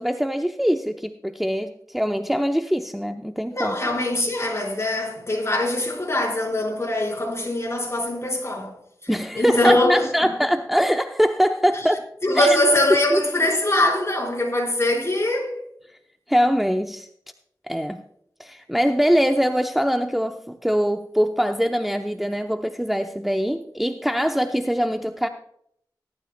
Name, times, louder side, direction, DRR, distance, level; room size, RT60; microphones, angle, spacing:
voice 1, 0.0-3.8 9.1-12.0 12.3-12.6 13.1-13.2 16.3-17.1 17.7-18.0 18.4-25.3, equal, ahead, 0.7 m, -23 dB
voice 2, 3.5-8.7 9.0-10.3 12.2-15.5, left 1 dB, 35° left, 4.4 m, -22 dB
19.0 x 12.0 x 2.2 m
cardioid pair, 50°, 8 cm